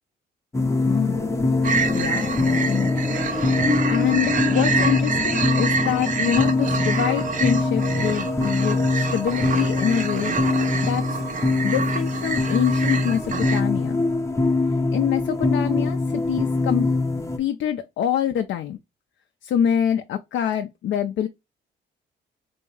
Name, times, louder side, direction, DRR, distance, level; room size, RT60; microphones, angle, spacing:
sound 1, 0.5-17.4, left 3 dB, 15° left, 0.5 m, -23 dB
voice 1, 0.9-1.3 1.9-3.2 3.9-10.4 10.8-11.2 11.6-14.0 14.9-16.9 17.4-18.8 19.4-21.3, left 9 dB, 70° left, 0.4 m, -25 dB
sound 2, 1.6-13.6, right 5 dB, 40° right, 0.6 m, -27 dB
3.4 x 2.7 x 3.2 m
cardioid pair, 90°, 20 cm